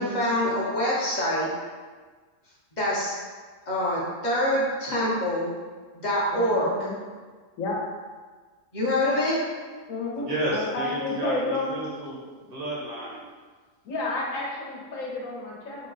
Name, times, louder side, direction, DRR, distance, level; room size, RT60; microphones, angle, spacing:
voice 1, 0.0-1.5 2.8-3.2 3.7-5.5 6.0-6.7 8.7-9.4, left 1 dB, 40° left, -7 dB, 0.8 m, -25 dB
voice 2, 6.3-7.0 7.6-7.8 9.9-11.8 13.8-15.9, left 2 dB, 75° left, -3 dB, 1.2 m, -31 dB
voice 3, 10.3-13.2, right 1 dB, 50° right, -6 dB, 0.9 m, -31 dB
3.8 x 2.2 x 3.8 m, 1.4 s
omnidirectional pair, 1.4 m